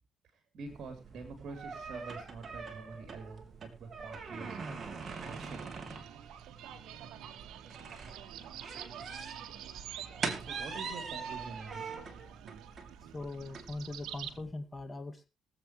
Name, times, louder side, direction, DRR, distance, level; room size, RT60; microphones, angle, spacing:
voice 1, 0.5-4.6 5.2-5.7 10.4-11.9, right 4 dB, 60° right, 5 dB, 3.2 m, -46 dB
sound 1, 0.7-14.5, right 4 dB, 40° right, 2.5 m, -44 dB
sound 2, 4.7-14.4, right 10 dB, 85° right, 1.3 m, -47 dB
voice 2, 13.1-15.3, left 2 dB, 20° left, 8 dB, 2.1 m, -41 dB
23.0 x 7.9 x 3.1 m, 0.27 s
cardioid pair, 90°, 0 cm